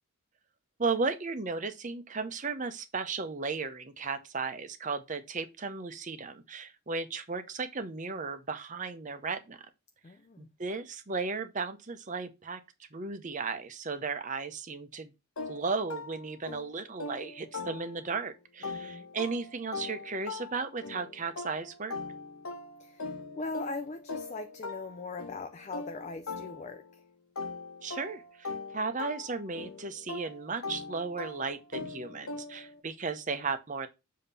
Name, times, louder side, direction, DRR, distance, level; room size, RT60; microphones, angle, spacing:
voice 1, 0.8-9.6 10.4-12.6 12.9-15.1 15.4-22.0 27.8-33.9, right 4 dB, 35° right, 0.7 m, -35 dB
voice 2, 10.0-10.5 18.6-19.1 22.8-27.0, left 3 dB, 35° left, 0.4 m, -40 dB
sound 1, 15.4-18.2 18.6-27.0 27.4-32.8, left 3 dB, 80° left, 0.9 m, -41 dB
7.1 x 2.8 x 5.4 m
head